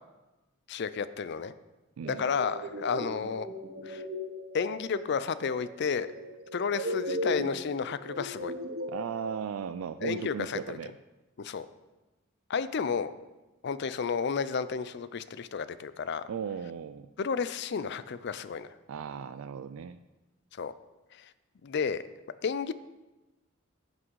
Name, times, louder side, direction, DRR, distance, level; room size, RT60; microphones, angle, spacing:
voice 1, 0.7-1.5 2.1-3.5 3.8-4.0 4.5-6.1 6.5-8.5 10.0-10.8 11.4-11.7 12.5-13.1 13.6-16.3 17.2-18.7 20.5-20.7 21.1-21.3 21.6-22.0 22.4-22.7, left 6 dB, 55° left, 15 dB, 0.4 m, -32 dB
sound 1, 2.0-9.4, equal, 45° right, 0.9 m, -38 dB
voice 2, 8.9-10.9 16.3-17.1 18.9-20.0, right 7 dB, 75° right, 11 dB, 0.3 m, -36 dB
11.0 x 6.1 x 4.7 m, 1.1 s
head